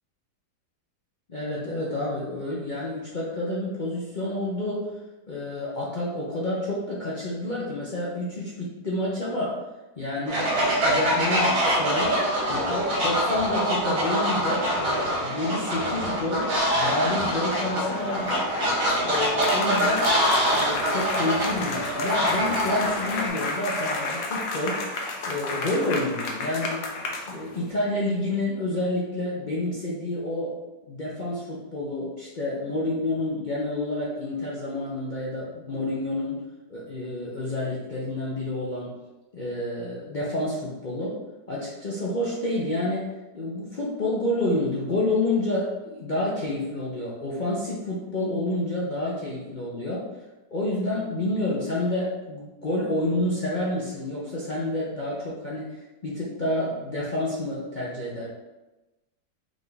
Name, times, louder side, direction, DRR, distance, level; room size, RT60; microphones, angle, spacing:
voice 1, 1.3-4.9 5.3-9.6 10.0-12.2 12.5-18.4 19.0-20.1 20.5-24.8 25.3-26.8 27.3-30.5 30.9-36.4 36.7-38.9 39.3-41.2 41.5-43.1 43.3-50.1 50.5-58.3, left 1 dB, 60° left, -7 dB, 0.4 m, -29 dB
Fowl, 10.3-23.3, equal, 85° right, 1.9 m, -25 dB
sound 1, 16.7-27.7, left 3 dB, 80° left, 1.4 m, -32 dB
5.0 x 2.5 x 4.0 m, 1.1 s
omnidirectional pair, 2.0 m